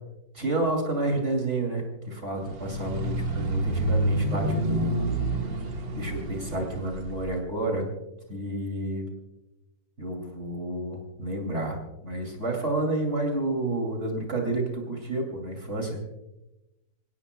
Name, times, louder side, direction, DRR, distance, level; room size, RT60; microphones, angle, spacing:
voice 1, 0.3-5.1 5.9-7.9 8.3-9.1 10.0-16.0, right 2 dB, 40° right, 1 dB, 3.0 m, -30 dB
sound 1, 2.4-7.4, right 1 dB, 90° right, 2.4 m, -28 dB
26.5 x 17.5 x 2.3 m, 0.98 s
omnidirectional pair, 2.0 m